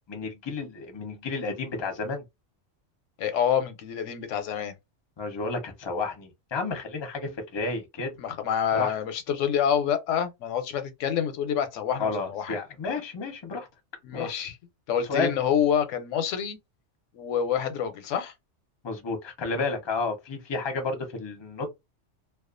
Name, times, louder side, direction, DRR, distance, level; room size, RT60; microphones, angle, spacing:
voice 1, 0.1-2.2 5.2-8.1 8.7-8.9 12.0-13.7 14.1-14.3 15.1-15.3 18.8-21.7, left 3 dB, 30° left, 0.5 m, -31 dB
voice 2, 3.2-4.7 8.2-12.6 14.0-14.6 14.9-16.6 17.1-18.3, left 8 dB, 90° left, 0.9 m, -27 dB
2.4 x 2.3 x 2.4 m
omnidirectional pair, 1.2 m